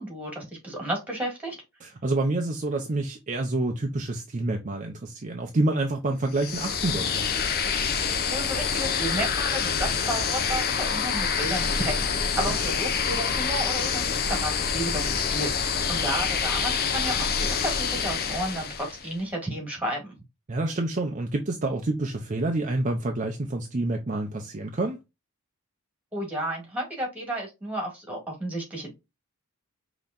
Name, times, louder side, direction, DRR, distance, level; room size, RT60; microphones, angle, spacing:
voice 1, 0.0-1.6 8.3-20.1 26.1-28.9, right 1 dB, 5° right, 2.1 m, -32 dB
voice 2, 1.8-7.3 12.5-12.6 20.5-25.0, right 2 dB, 35° right, 0.6 m, -28 dB
sound 1, 6.3-19.1, left 6 dB, 45° left, 0.6 m, -27 dB
5.4 x 2.9 x 2.5 m
head